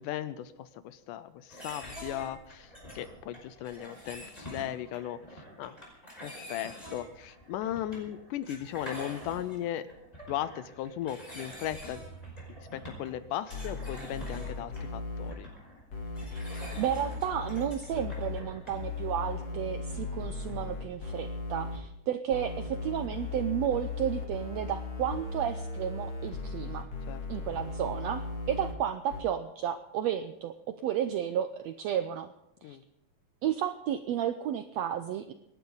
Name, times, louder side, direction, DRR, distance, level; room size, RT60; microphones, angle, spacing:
voice 1, 0.0-5.8 6.2-9.9 10.3-12.0 12.6-15.5 27.0-27.2 32.6-32.8, left 11 dB, 80° left, 14 dB, 2.1 m, -37 dB
sound 1, 1.5-18.9, equal, 10° left, 5.0 m, -46 dB
sound 2, 13.5-15.3 15.9-18.4 18.7-21.8 22.3-28.7 29.1-29.2, left 4 dB, 45° left, 3.4 m, -37 dB
voice 2, 16.8-26.9 27.3-28.2 28.5-32.3 32.6-32.8 33.4-35.3, right 10 dB, 85° right, 8 dB, 1.5 m, -32 dB
26.5 x 11.5 x 4.0 m, 0.80 s
omnidirectional pair, 3.8 m